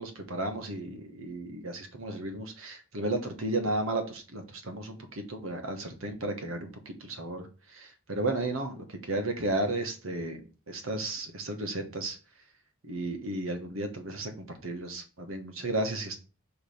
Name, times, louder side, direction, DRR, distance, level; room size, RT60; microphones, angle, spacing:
voice 1, 0.0-7.5 7.7-10.4 10.7-12.2 12.8-16.2, right 2 dB, 75° right, 6 dB, 1.4 m, -34 dB
5.1 x 4.8 x 5.1 m, 0.35 s
head